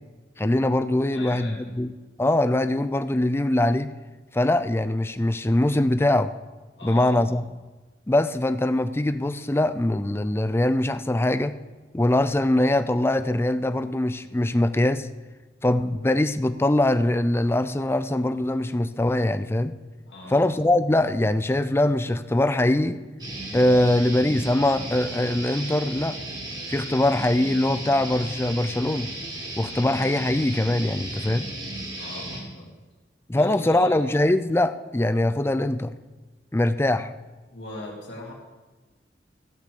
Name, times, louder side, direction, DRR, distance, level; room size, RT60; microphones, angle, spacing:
voice 1, 0.4-1.9 2.2-3.9 4.3-6.3 6.8-7.4 8.1-11.6 11.9-15.1 15.6-19.8 20.3-23.0 23.5-26.2 26.7-29.1 29.6-31.4 33.3-35.9 36.5-37.1, left 1 dB, 15° left, 12 dB, 0.4 m, -22 dB
voice 2, 1.1-1.8 6.7-7.4 20.1-20.6 32.0-32.8 33.3-34.1 37.5-38.3, left 1 dB, 85° left, -4 dB, 2.7 m, -39 dB
sound 1, 23.2-32.4, right 1 dB, 25° right, 3.0 m, -35 dB
15.5 x 6.3 x 6.9 m, 1.2 s
head